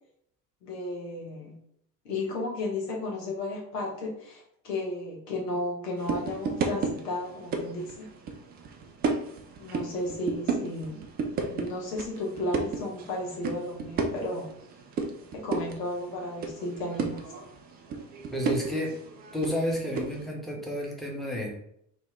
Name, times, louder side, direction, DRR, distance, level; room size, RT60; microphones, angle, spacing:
voice 1, 0.6-1.6 2.0-8.1 9.6-11.0 11.5-14.5 15.3-17.2, left 1 dB, 70° left, -2 dB, 1.2 m, -34 dB
sound 1, 6.0-20.3, right 4 dB, 20° right, 0.3 m, -34 dB
voice 2, 18.3-18.9 19.3-21.5, equal, ahead, -2 dB, 1.0 m, -30 dB
2.9 x 2.5 x 3.5 m, 0.71 s
figure-of-eight pair, 65°, 49 cm